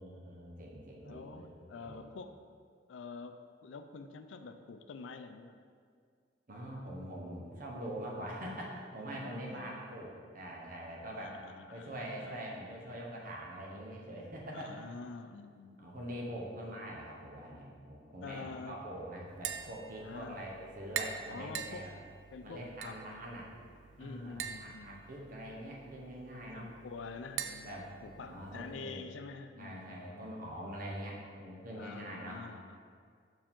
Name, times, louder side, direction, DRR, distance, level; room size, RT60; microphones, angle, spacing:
voice 1, 0.0-2.1 6.5-11.4 11.7-14.8 15.8-21.9 22.4-23.5 24.0-26.7 27.6-27.9 28.2-29.1 29.6-32.4, right 1 dB, 50° right, -2 dB, 1.1 m, -44 dB
voice 2, 1.0-2.4 2.9-5.5 9.1-9.7 11.1-12.4 14.5-16.2 18.2-18.8 20.0-20.5 21.3-21.9 22.3-23.0 24.0-25.1 26.3-30.3 31.8-32.8, left 4 dB, 85° left, 8 dB, 0.4 m, -47 dB
Tap, 19.3-28.8, right 8 dB, 70° right, 0.4 m, -45 dB
6.1 x 4.8 x 3.7 m, 2.1 s
head